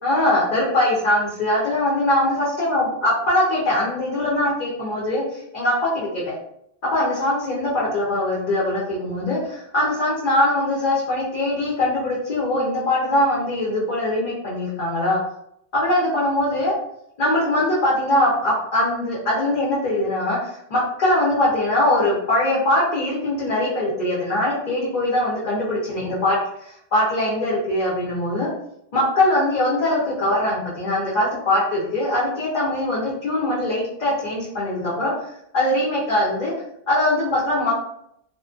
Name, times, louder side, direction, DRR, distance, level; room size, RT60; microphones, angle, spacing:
voice 1, 0.0-6.3 6.9-15.2 15.7-16.7 17.2-28.5 28.9-35.1 35.5-36.5 36.9-37.7, left 1 dB, 50° left, -6 dB, 0.7 m, -22 dB
2.5 x 2.1 x 2.4 m, 0.75 s
omnidirectional pair, 1.2 m